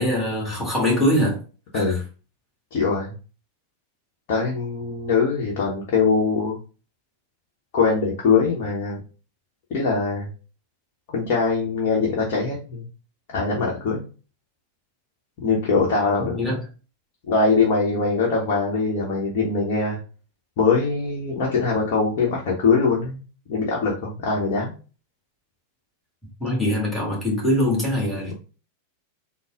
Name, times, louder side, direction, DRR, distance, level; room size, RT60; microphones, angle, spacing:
voice 1, 0.0-1.4 1.7-2.0 16.2-16.6 26.4-28.3, left 1 dB, ahead, 1.6 m, -23 dB
voice 2, 2.7-3.1 4.3-6.6 7.7-9.0 9.7-10.3 11.1-12.8 13.3-14.0 15.4-16.5 17.3-20.0 20.6-23.2 23.5-24.7 28.3-28.4, left 4 dB, 45° left, 0.9 m, -22 dB
3.9 x 2.0 x 3.7 m
figure-of-eight pair, 90°, 0 cm